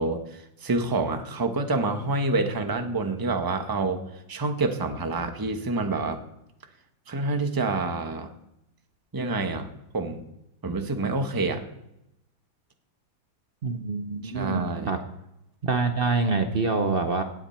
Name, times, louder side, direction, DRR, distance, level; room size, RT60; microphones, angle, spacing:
voice 1, 0.0-6.2 7.1-8.3 9.1-9.7 9.9-10.2 10.6-11.6 14.2-14.9, right 3 dB, 15° right, 6 dB, 0.7 m, -27 dB
voice 2, 13.6-15.0 15.6-17.2, right 4 dB, 55° right, 7 dB, 0.6 m, -26 dB
17.5 x 8.9 x 4.4 m, 0.84 s
omnidirectional pair, 2.2 m